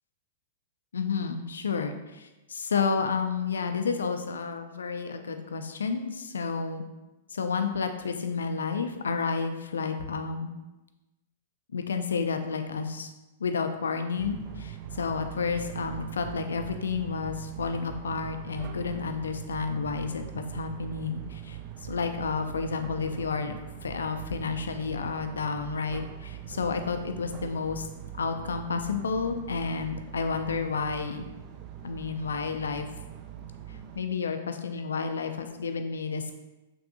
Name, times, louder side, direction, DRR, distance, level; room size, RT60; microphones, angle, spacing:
voice 1, 0.9-6.8 7.3-10.5 11.7-13.1 13.4-27.9 28.2-31.2 31.8-32.9 33.7-36.3, left 5 dB, 85° left, 7 dB, 0.3 m, -31 dB
sound 1, 14.2-34.0, right 10 dB, 40° right, 0.3 m, -42 dB
3.3 x 2.6 x 2.6 m, 1.0 s
hypercardioid pair, 120°, 0 cm